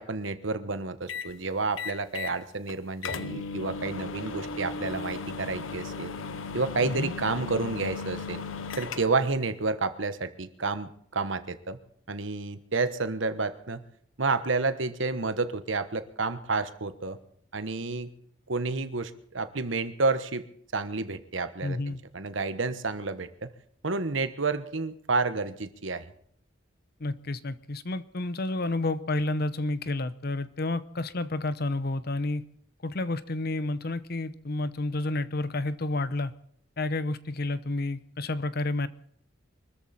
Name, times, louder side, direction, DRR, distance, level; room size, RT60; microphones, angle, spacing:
voice 1, 0.0-6.1 6.5-8.4 8.8-11.8 12.1-13.8 14.2-17.2 17.5-18.1 18.5-20.4 20.7-23.5 23.8-26.1, right 3 dB, 75° right, 11 dB, 1.2 m, -30 dB
sound 1, 1.1-1.3 1.8-2.4 2.7-2.8 3.0-9.3, left 4 dB, 90° left, 0.9 m, -36 dB
voice 2, 6.8-7.1 21.6-22.0 27.0-32.4 32.8-36.3 36.8-38.9, left 2 dB, 55° left, 15 dB, 0.9 m, -30 dB
23.5 x 13.5 x 4.3 m, 0.65 s
head